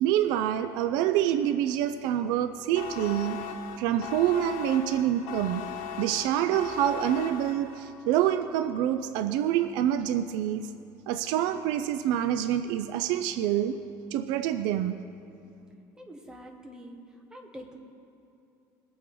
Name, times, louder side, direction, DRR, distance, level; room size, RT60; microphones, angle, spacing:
voice 1, 0.0-3.5 3.8-5.7 6.0-10.7 11.1-13.8 14.1-15.0, right 11 dB, 85° right, 10 dB, 0.5 m, -26 dB
sound 1, 2.7-8.0, left 7 dB, 75° left, 1.0 m, -38 dB
voice 2, 16.0-17.0 17.3-17.8, equal, 10° right, 2 dB, 1.4 m, -45 dB
22.0 x 8.5 x 3.9 m, 2.8 s
cardioid pair, 145°, 7 cm